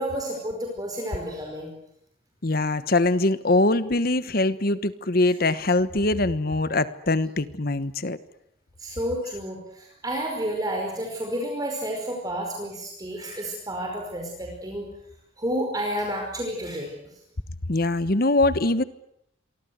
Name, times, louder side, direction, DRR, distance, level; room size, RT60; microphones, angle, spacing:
voice 1, 0.0-1.7 8.8-14.9 15.4-16.9, equal, 20° right, 1 dB, 5.2 m, -30 dB
voice 2, 2.4-8.2 17.7-18.8, left 2 dB, 50° left, 13 dB, 1.2 m, -23 dB
28.5 x 24.0 x 8.2 m, 0.78 s
head